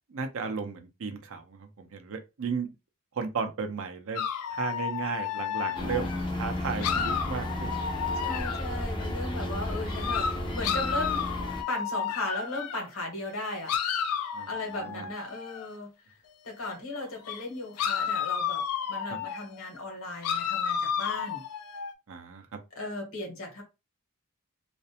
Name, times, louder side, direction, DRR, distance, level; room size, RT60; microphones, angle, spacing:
voice 1, 0.1-2.7 3.1-4.2 4.6-7.7 14.3-15.0 19.1-19.2 22.1-22.6, right 5 dB, 65° right, 0.5 m, -34 dB
sound 1, 4.1-6.3 6.8-8.9 9.9-12.9 13.7-15.7 17.3-17.4 17.8-19.5 20.2-21.9, left 7 dB, 85° left, 0.4 m, -32 dB
sound 2, 5.7-11.6, left 1 dB, 20° left, 0.5 m, -33 dB
voice 2, 8.2-10.3 10.5-11.2 11.7-13.7 14.5-15.9 16.4-21.4 22.7-23.6, left 2 dB, 65° left, 1.1 m, -36 dB
2.5 x 2.0 x 2.8 m
head